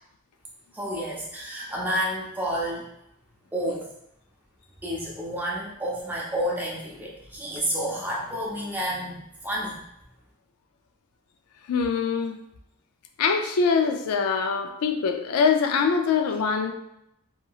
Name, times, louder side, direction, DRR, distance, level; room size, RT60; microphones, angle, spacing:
voice 1, 0.7-2.9 3.5-3.9 4.8-9.8, equal, 10° right, -5 dB, 0.6 m, -30 dB
voice 2, 11.7-12.4 13.2-16.7, left 5 dB, 85° left, 6 dB, 0.4 m, -23 dB
2.8 x 2.7 x 2.3 m, 0.80 s
head